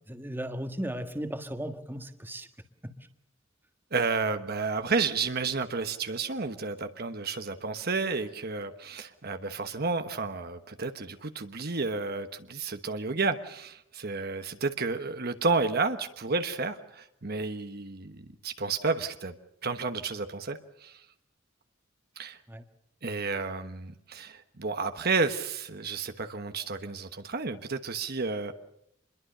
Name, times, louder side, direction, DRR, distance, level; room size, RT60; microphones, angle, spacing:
voice 1, 0.1-2.5 2.8-2.9 22.5-22.6, right 1 dB, 10° right, 7 dB, 1.6 m, -36 dB
voice 2, 3.9-19.3 19.6-21.0 22.2-22.4 23.0-28.5, right 4 dB, 55° right, 8 dB, 1.2 m, -31 dB
26.0 x 22.0 x 6.7 m, 0.78 s
head